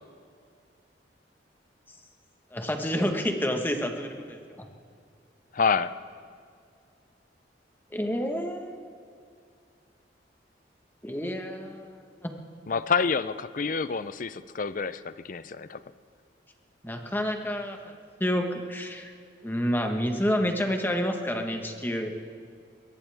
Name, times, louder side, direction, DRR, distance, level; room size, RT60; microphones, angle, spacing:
voice 1, 2.5-4.4 7.9-8.9 11.0-12.3 16.8-17.9 18.2-19.1 19.4-22.1, equal, 10° left, 3 dB, 1.3 m, -29 dB
voice 2, 5.5-5.9 12.7-15.8, left 5 dB, 45° left, 14 dB, 0.5 m, -28 dB
22.5 x 18.0 x 3.5 m, 2.3 s
head